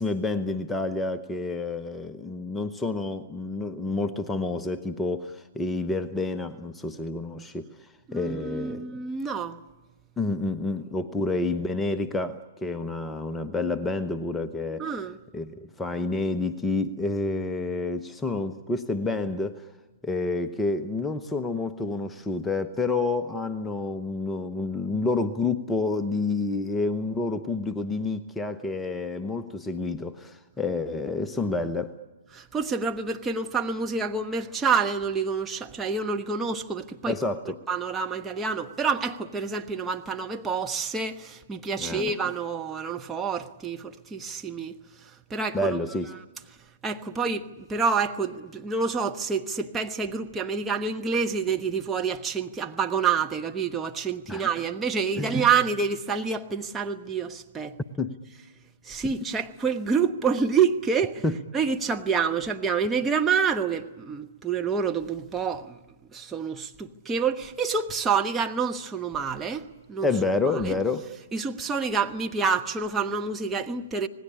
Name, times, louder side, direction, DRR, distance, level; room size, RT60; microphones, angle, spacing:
voice 1, 0.0-7.7 8.1-8.8 10.2-14.9 15.3-19.7 20.0-31.9 37.1-37.6 41.8-42.0 45.5-46.1 54.3-54.5 55.2-55.3 58.0-58.2 61.2-61.4 70.0-71.1, left 3 dB, 10° left, 0.9 m, -29 dB
voice 2, 8.1-9.6 14.8-15.2 32.3-37.2 37.7-44.7 45.3-46.0 46.8-57.8 58.8-61.2 61.5-65.8 66.1-70.1 70.6-70.8 71.3-74.1, right 5 dB, 10° right, 1.1 m, -27 dB
26.5 x 19.5 x 10.0 m
figure-of-eight pair, 120°, 0 cm